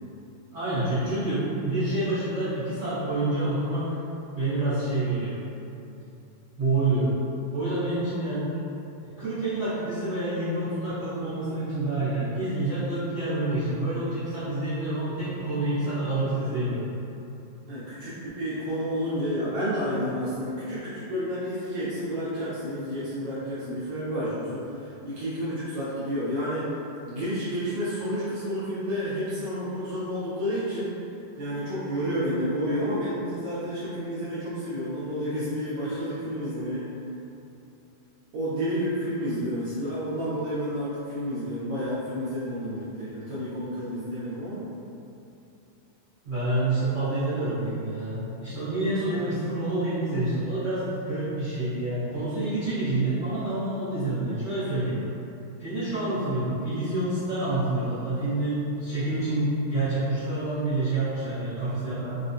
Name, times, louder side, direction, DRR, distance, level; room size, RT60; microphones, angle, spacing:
voice 1, 0.5-4.0 4.3-5.4 6.6-7.1 7.5-8.5 9.0-16.9 46.2-55.0 55.6-62.1, right 2 dB, 65° right, -17 dB, 1.2 m, -28 dB
voice 2, 17.7-24.6 25.0-26.6 27.0-30.9 31.4-36.8 38.3-44.6, equal, 85° right, -12 dB, 1.6 m, -30 dB
5.3 x 2.1 x 2.6 m, 2.8 s
omnidirectional pair, 4.0 m